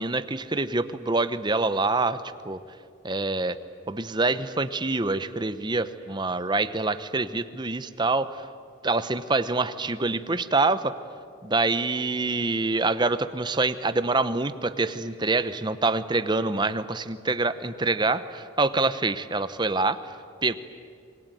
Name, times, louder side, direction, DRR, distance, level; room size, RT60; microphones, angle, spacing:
voice 1, 0.0-2.2 2.5-2.6 3.0-3.6 3.9-8.3 8.8-10.9 11.4-20.0 20.4-20.5, right 3 dB, 20° right, 12 dB, 0.8 m, -26 dB
26.0 x 22.0 x 9.2 m, 2.3 s
head